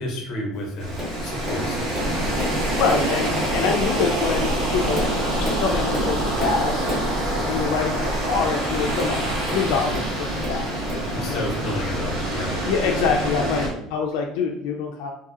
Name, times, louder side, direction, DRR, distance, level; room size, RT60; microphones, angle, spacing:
voice 1, 0.0-2.3 11.1-12.6 13.4-13.5, left 1 dB, 40° left, 1 dB, 0.7 m, -31 dB
sound 1, 0.8-13.7, right 1 dB, 60° right, 1.5 m, -25 dB
Tap, 1.0-1.2 1.4-2.6 2.9-3.2 3.9-4.0 4.6-7.2 8.9-10.1 10.4-11.1 11.9-12.0, left 1 dB, 15° right, 0.9 m, -32 dB
voice 2, 2.7-9.2 9.5-11.5 12.6-15.1, left 5 dB, 80° left, 1 dB, 0.3 m, -26 dB
2.6 x 2.6 x 2.4 m, 0.82 s
cardioid pair, 180°, 0 cm